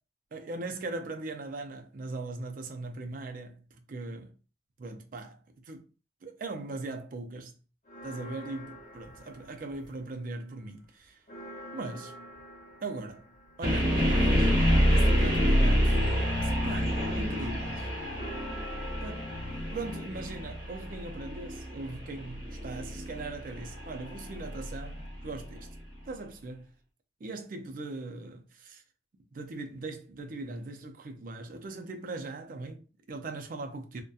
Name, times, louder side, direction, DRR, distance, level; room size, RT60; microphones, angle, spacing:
voice 1, 0.3-4.3 4.8-5.8 6.2-7.5 8.0-11.2 11.7-12.2 12.8-13.3 13.6-14.5 14.9-16.0 16.4-17.9 19.0-19.3 19.7-25.7 26.1-26.7 27.2-28.8 29.3-34.0, right 2 dB, 50° right, 0.4 m, -40 dB
sound 1, 7.9-10.2 10.6-21.1, equal, 45° left, 0.6 m, -48 dB
sound 2, 13.6-25.6, equal, 25° right, 1.1 m, -27 dB
2.7 x 2.1 x 2.3 m
head